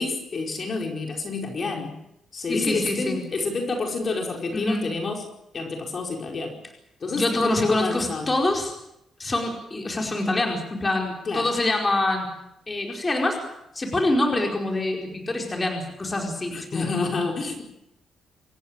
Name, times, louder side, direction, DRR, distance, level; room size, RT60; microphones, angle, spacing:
voice 1, 0.0-2.0 2.3-5.2 5.5-6.6 7.0-8.3 11.2-11.5 16.5-17.6, left 3 dB, 40° left, 2 dB, 4.8 m, -28 dB
voice 2, 2.5-3.2 4.5-4.9 7.1-8.7 9.2-12.3 12.7-13.4 13.7-16.9, left 2 dB, 20° left, 1 dB, 4.7 m, -25 dB
27.5 x 15.5 x 8.9 m, 0.84 s
cardioid pair, 130°, 0 cm